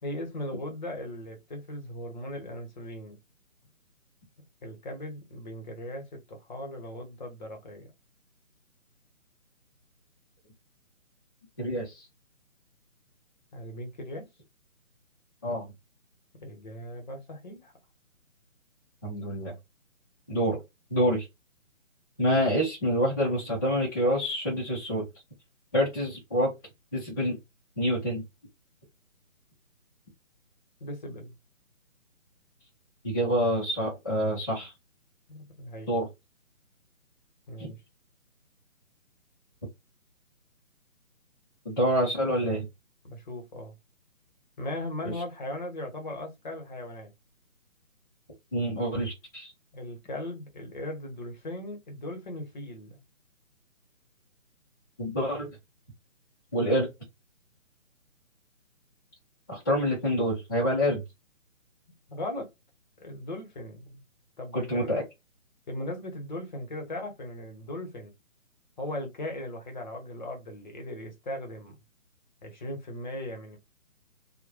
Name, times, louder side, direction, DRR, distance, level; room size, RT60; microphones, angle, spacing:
voice 1, 0.0-3.2 4.6-7.9 13.5-14.3 16.4-17.7 30.8-31.4 35.3-36.0 37.5-37.8 43.0-43.7 44.6-47.1 49.7-53.0 62.1-62.5 63.0-64.0 64.4-65.0 65.7-68.1 68.8-71.7 72.4-73.6, left 1 dB, 35° left, 0.9 m, -38 dB
voice 2, 11.6-12.0 15.4-15.7 19.0-19.5 20.3-20.6 20.9-21.3 22.2-25.0 25.7-26.5 26.9-27.4 27.8-28.2 33.0-34.7 35.9-36.1 37.6-37.7 41.6-42.7 45.0-45.1 48.5-49.5 55.0-55.5 56.5-56.9 59.5-61.0 64.5-65.0, equal, 15° left, 0.5 m, -27 dB
3.1 x 2.2 x 2.2 m
figure-of-eight pair, 145°, 40 cm